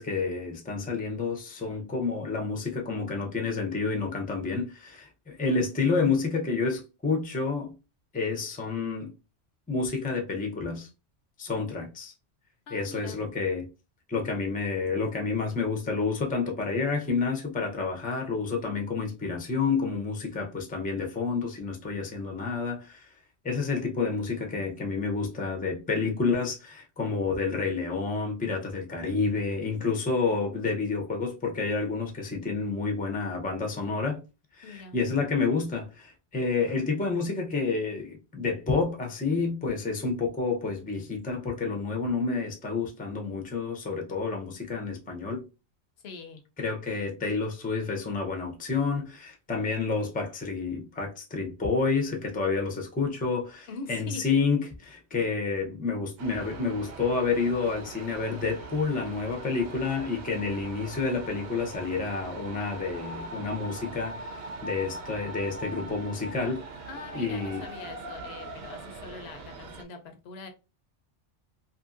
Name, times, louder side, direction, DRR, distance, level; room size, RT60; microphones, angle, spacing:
voice 1, 0.0-7.7 8.1-9.1 9.7-10.9 11.4-12.1 12.7-13.7 14.1-23.1 23.4-34.2 34.5-45.4 46.6-66.6 67.1-67.6, left 4 dB, 10° left, 0.4 m, -29 dB
voice 2, 12.7-13.2 34.6-35.0 46.0-46.4 53.7-54.4 66.9-70.5, left 4 dB, 65° left, 0.8 m, -42 dB
sound 1, 56.2-69.8, right 3 dB, 65° right, 0.8 m, -41 dB
2.8 x 2.6 x 2.4 m
omnidirectional pair, 1.2 m